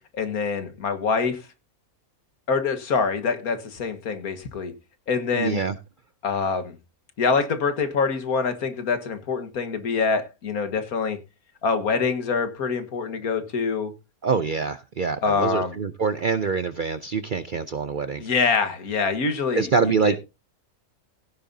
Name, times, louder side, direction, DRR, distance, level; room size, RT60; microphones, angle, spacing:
voice 1, 0.1-1.5 2.5-4.7 5.1-5.6 6.2-6.8 7.2-11.2 11.6-13.9 15.2-15.8 18.2-20.2, left 5 dB, 80° left, 1.9 m, -25 dB
voice 2, 5.3-5.7 14.2-18.3 19.5-20.2, right 5 dB, 55° right, 0.5 m, -25 dB
16.0 x 9.0 x 2.7 m
omnidirectional pair, 1.5 m